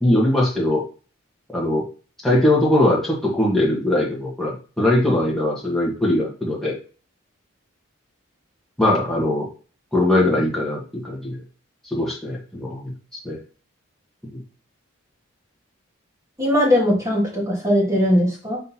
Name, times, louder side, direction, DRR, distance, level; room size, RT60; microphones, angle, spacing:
voice 1, 0.0-0.8 1.5-1.8 2.2-6.7 8.8-9.5 9.9-11.4 11.9-12.9 13.2-13.4 14.3-14.4, left 1 dB, ahead, -5 dB, 1.6 m, -20 dB
voice 2, 16.4-18.6, equal, 15° right, -4 dB, 2.3 m, -19 dB
5.3 x 4.1 x 4.4 m, 0.38 s
head